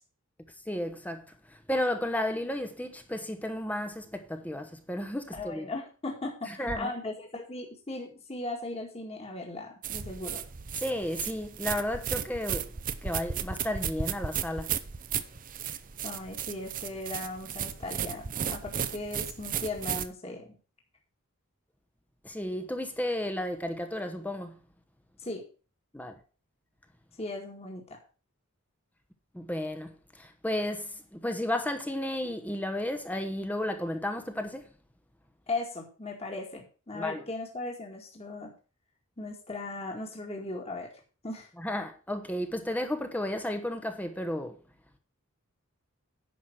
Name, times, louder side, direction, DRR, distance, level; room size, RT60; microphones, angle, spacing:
voice 1, 0.7-5.7 6.5-6.9 10.8-12.7 13.0-14.7 22.2-24.6 25.9-26.2 29.3-34.7 36.9-37.2 41.6-44.6, left 1 dB, 5° left, 1.0 m, -33 dB
voice 2, 5.3-10.4 16.0-20.5 25.2-25.4 27.2-28.0 35.5-38.5 39.2-40.9 41.2-41.5, left 2 dB, 30° left, 2.1 m, -37 dB
sound 1, 9.8-20.1, right 8 dB, 40° right, 0.7 m, -34 dB
10.5 x 6.0 x 6.3 m
head